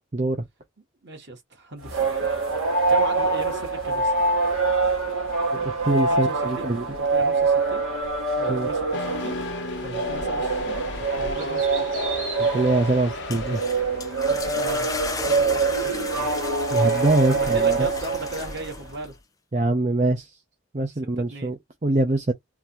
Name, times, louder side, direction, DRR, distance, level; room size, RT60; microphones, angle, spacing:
voice 1, 0.1-0.4 5.5-6.9 8.5-8.7 12.4-13.6 16.7-17.9 19.5-20.4 20.7-22.3, right 2 dB, 35° right, 0.6 m, -24 dB
voice 2, 1.0-2.3 2.9-4.1 6.1-8.1 8.4-9.4 9.8-10.9 11.2-11.9 14.5-14.9 15.2-16.3 17.2-19.1 21.2-21.5, right 2 dB, 55° right, 1.8 m, -37 dB
sound 1, 1.8-18.8, right 3 dB, 90° right, 1.9 m, -25 dB
sound 2, 8.9-14.2, left 2 dB, 55° left, 0.7 m, -34 dB
sound 3, 13.1-19.1, left 4 dB, 15° left, 0.5 m, -36 dB
3.8 x 2.6 x 3.0 m
head